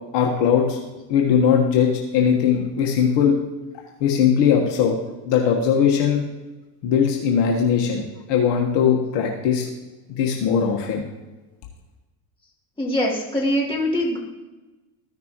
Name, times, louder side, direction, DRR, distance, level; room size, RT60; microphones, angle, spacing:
voice 1, 0.1-0.8 1.1-3.3 4.0-5.0 5.2-6.2 6.8-9.6 10.1-11.0, left 7 dB, 60° left, 1 dB, 1.5 m, -19 dB
voice 2, 12.8-14.2, equal, 10° left, -5 dB, 3.1 m, -23 dB
14.5 x 6.0 x 3.0 m, 1.1 s
supercardioid pair, 90°, 49 cm